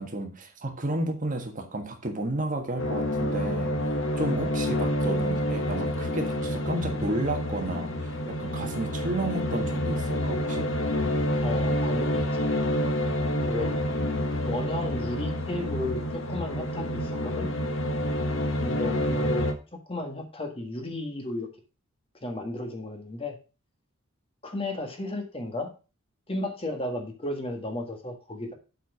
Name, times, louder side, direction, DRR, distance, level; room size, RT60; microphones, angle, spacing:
voice 1, 0.0-3.7 4.2-10.7, right 1 dB, 40° right, 4 dB, 1.6 m, -32 dB
sound 1, 2.8-19.5, left 1 dB, 65° left, 1.4 m, -28 dB
voice 2, 11.4-12.7 13.4-13.8 14.4-17.5 18.6-19.4 19.9-21.5 22.2-23.4 24.4-25.7 26.3-28.5, left 1 dB, 25° left, 4 dB, 1.7 m, -34 dB
8.0 x 4.7 x 6.0 m, 0.32 s
head